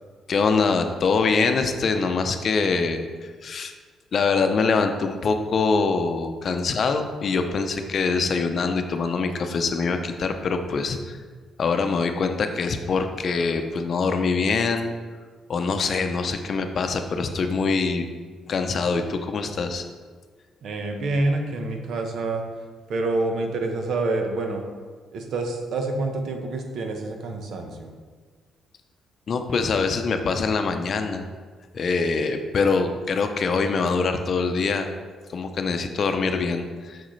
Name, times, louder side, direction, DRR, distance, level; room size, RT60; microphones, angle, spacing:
voice 1, 0.3-3.7 4.1-11.2 11.6-15.0 15.5-18.1 18.5-19.8 29.3-31.2 31.7-34.9 35.3-37.1, left 4 dB, 50° left, 6 dB, 0.6 m, -24 dB
voice 2, 20.6-22.4 22.9-24.7 25.1-27.9, right 2 dB, 70° right, 4 dB, 0.9 m, -27 dB
6.4 x 6.3 x 3.2 m, 1.5 s
cardioid pair, 90°, 0 cm